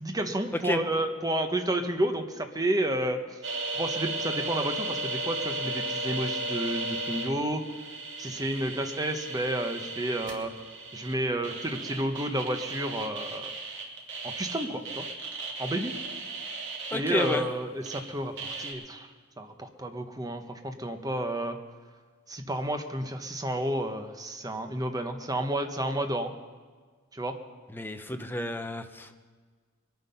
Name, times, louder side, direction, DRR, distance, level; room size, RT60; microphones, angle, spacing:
voice 1, 0.0-3.2 3.8-7.6 8.2-10.5 10.9-13.5 14.2-15.0 15.6-15.9 16.9-19.1 19.4-21.6 22.3-26.3 27.1-27.4, right 1 dB, 15° right, 5 dB, 1.0 m, -31 dB
sound 1, 3.4-18.0 18.4-18.7, right 2 dB, 60° right, 2.4 m, -35 dB
voice 2, 16.9-17.5 27.7-29.2, left 1 dB, 10° left, 7 dB, 0.8 m, -30 dB
22.5 x 9.4 x 5.6 m, 1.5 s
head